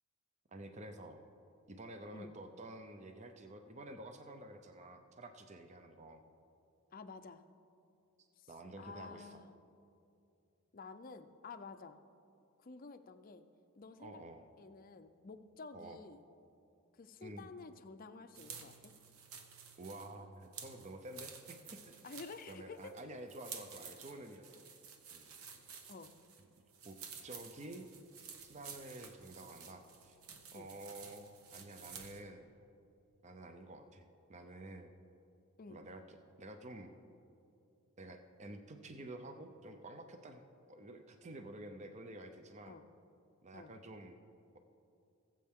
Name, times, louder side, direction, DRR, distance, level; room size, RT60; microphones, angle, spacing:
voice 1, 0.5-1.2 1.7-6.2 8.5-9.4 14.0-14.4 15.7-16.0 17.2-17.5 19.8-22.0 22.5-24.5 25.1-25.3 26.8-27.0 27.2-27.9 28.4-30.2 30.5-32.5 33.2-34.9 35.7-36.0 36.4-37.0 38.0-40.4 40.7-42.8 43.4-44.2, right 1 dB, 30° right, 6 dB, 0.6 m, -50 dB
voice 2, 6.9-7.4 8.4-8.5 8.8-9.5 10.7-12.0 12.6-13.4 13.8-14.2 14.6-16.2 16.9-18.9 22.0-22.9 25.9-26.1 30.5-30.7 35.6-35.8 42.7-42.8 43.5-43.7, left 4 dB, 40° left, 9 dB, 0.5 m, -51 dB
sound 1, 18.3-32.3, right 6 dB, 75° right, 1.0 m, -52 dB
19.5 x 7.6 x 3.6 m, 2.6 s
head